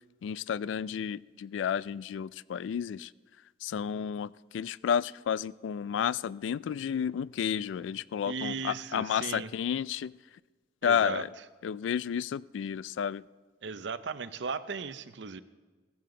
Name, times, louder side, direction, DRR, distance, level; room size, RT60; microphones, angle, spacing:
voice 1, 0.2-3.1 3.6-10.1 10.8-11.3 11.6-13.2, left 8 dB, 90° left, 21 dB, 0.3 m, -31 dB
voice 2, 8.3-9.5 10.8-11.2 13.6-15.4, right 5 dB, 75° right, 14 dB, 0.6 m, -36 dB
15.5 x 14.0 x 3.8 m, 1.3 s
head